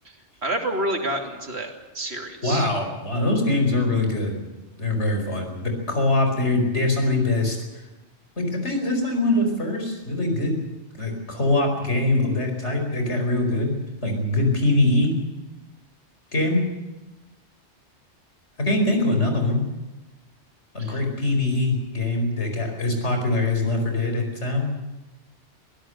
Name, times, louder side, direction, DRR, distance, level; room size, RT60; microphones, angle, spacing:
voice 1, 0.4-2.7 20.8-21.0, right 1 dB, 60° right, 3 dB, 3.1 m, -29 dB
voice 2, 2.4-4.4 4.8-7.6 8.4-10.6 11.0-15.1 16.3-16.6 18.6-19.6 20.7-24.7, left 2 dB, 70° left, 4 dB, 5.2 m, -23 dB
23.0 x 16.5 x 7.9 m, 1.1 s
omnidirectional pair, 1.2 m